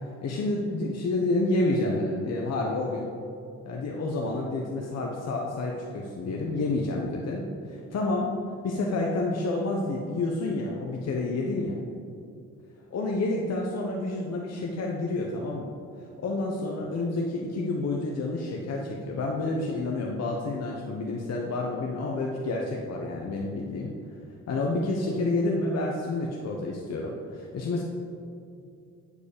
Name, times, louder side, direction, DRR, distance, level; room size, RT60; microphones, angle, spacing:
voice 1, 0.2-3.1 3.6-8.3 8.6-11.8 12.9-23.9 24.5-27.8, left 2 dB, 55° left, -1 dB, 1.1 m, -29 dB
8.6 x 5.1 x 6.7 m, 2.5 s
cardioid pair, 90°, 30 cm